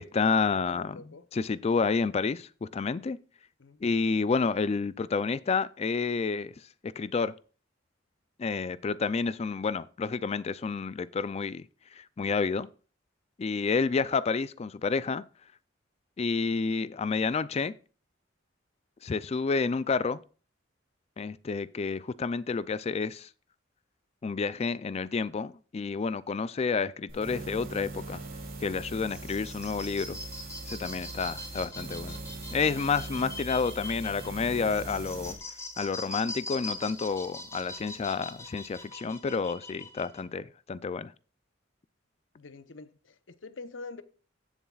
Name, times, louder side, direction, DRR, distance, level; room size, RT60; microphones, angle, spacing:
voice 1, 0.0-1.0 1.3-3.2 3.8-6.5 7.0-7.3 8.4-11.7 12.0-12.7 13.4-15.2 16.2-17.7 19.0-20.2 21.2-23.3 24.2-28.2 28.6-30.2 30.7-32.2 32.5-35.3 35.8-41.1, left 4 dB, 35° left, 0.4 m, -29 dB
voice 2, 0.6-1.3 3.6-3.8 42.3-44.0, left 3 dB, 75° left, 0.8 m, -45 dB
sound 1, 27.1-35.4, right 2 dB, 50° right, 3.0 m, -41 dB
sound 2, 28.9-40.2, left 2 dB, 15° left, 2.2 m, -42 dB
15.5 x 7.2 x 2.4 m
head